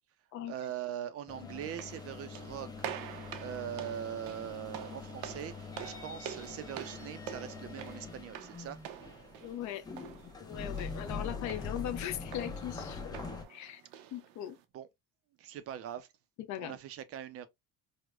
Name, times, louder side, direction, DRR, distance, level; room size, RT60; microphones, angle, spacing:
voice 1, 0.5-2.9 3.4-8.8 14.7-14.9 15.4-16.1 16.5-17.5, right 10 dB, 45° right, 0.4 m, -41 dB
sound 1, 1.3-13.4, left 4 dB, 10° left, 0.4 m, -43 dB
sound 2, 1.6-14.6, right 10 dB, 90° right, 0.6 m, -47 dB
voice 2, 9.4-9.8 10.2-13.2 13.5-13.8 14.1-14.6 16.5-16.8, left 11 dB, 55° left, 0.6 m, -39 dB
4.7 x 2.1 x 2.3 m
cardioid pair, 150°, 34 cm